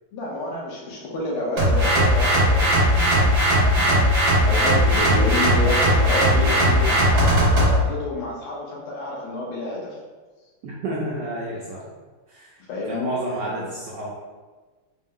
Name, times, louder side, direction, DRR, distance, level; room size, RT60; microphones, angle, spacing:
voice 1, 0.1-10.0 12.7-13.7, left 1 dB, 80° left, -3 dB, 1.8 m, -30 dB
sound 1, 1.6-7.8, equal, 50° right, 1.5 m, -18 dB
voice 2, 3.7-4.1 10.6-11.9 12.3-12.6 12.8-14.1, right 1 dB, 75° right, -6 dB, 1.0 m, -30 dB
sound 2, 4.4-7.8, equal, 65° left, 1.3 m, -34 dB
4.3 x 2.1 x 3.7 m, 1.3 s
omnidirectional pair, 2.4 m